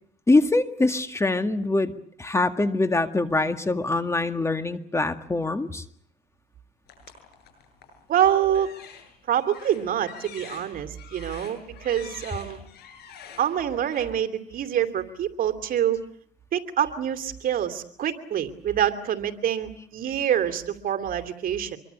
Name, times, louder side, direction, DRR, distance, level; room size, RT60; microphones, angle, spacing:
voice 1, 0.3-1.9 2.2-5.8, left 2 dB, 15° left, 8 dB, 1.9 m, -23 dB
sound 1, 6.9-8.0 8.5-14.0, left 7 dB, 70° left, 8.0 m, -46 dB
voice 2, 8.1-8.7 9.3-12.6 13.4-16.0 16.5-21.8, right 10 dB, 60° right, 9 dB, 2.8 m, -26 dB
25.5 x 23.5 x 8.3 m, 0.64 s
cardioid pair, 110°, 17 cm